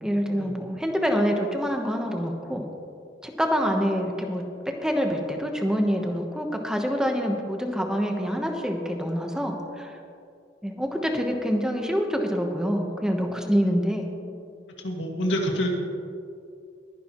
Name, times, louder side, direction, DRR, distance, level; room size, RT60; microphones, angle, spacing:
voice 1, 0.0-2.7 3.2-10.0 10.6-14.1, equal, 5° right, 3 dB, 1.0 m, -26 dB
voice 2, 14.8-15.7, equal, 90° left, 0 dB, 2.1 m, -27 dB
21.5 x 10.0 x 3.0 m, 2.5 s
head